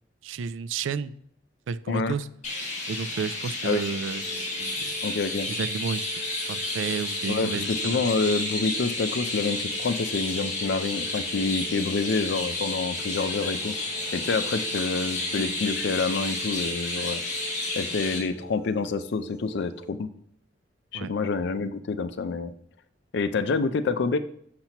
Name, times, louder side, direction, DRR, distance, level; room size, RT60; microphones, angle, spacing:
voice 1, 0.2-1.2 1.7-2.3 2.9-4.9 5.5-6.1 6.5-8.1 20.9-21.1, right 6 dB, 85° right, 16 dB, 0.4 m, -32 dB
Chirp tweet, 2.4-18.2, left 2 dB, 40° left, 1.7 m, -31 dB
sound 1, 3.9-19.9, right 4 dB, 5° right, 1.1 m, -47 dB
voice 2, 5.0-5.5 7.3-13.7 14.1-17.2 17.8-20.1 20.9-22.5 23.1-24.2, left 4 dB, 65° left, 11 dB, 0.5 m, -27 dB
6.7 x 5.9 x 2.9 m, 0.67 s
head